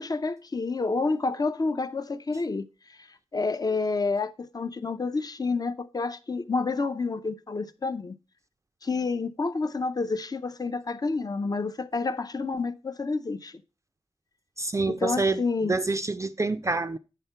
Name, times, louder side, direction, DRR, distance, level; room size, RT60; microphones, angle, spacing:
voice 1, 0.0-2.6 3.3-8.1 8.8-13.5 14.9-15.7, left 3 dB, 35° left, 0.5 m, -29 dB
voice 2, 14.6-17.0, right 3 dB, 25° right, 0.4 m, -27 dB
9.2 x 3.6 x 5.6 m
wide cardioid pair, 95°, 11 cm